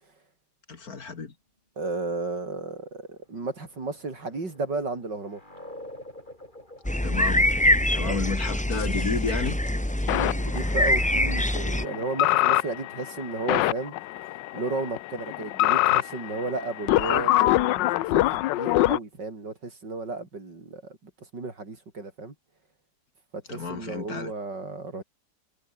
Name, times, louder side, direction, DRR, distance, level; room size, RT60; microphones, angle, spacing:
voice 1, 0.7-1.3 7.0-7.5 7.9-9.6 23.5-24.3, left 5 dB, 55° left, 2.6 m, -31 dB
voice 2, 1.8-5.4 8.0-8.3 10.0-13.9 14.3-22.3 23.3-25.0, right 3 dB, 75° right, 5.4 m, -34 dB
sound 1, 2.9-14.3, left 1 dB, 25° left, 8.0 m, -50 dB
sound 2, 6.8-11.8, left 1 dB, 5° left, 1.2 m, -24 dB
sound 3, 8.7-9.0 10.1-19.0, left 16 dB, 80° left, 1.3 m, -25 dB
omnidirectional pair, 1.9 m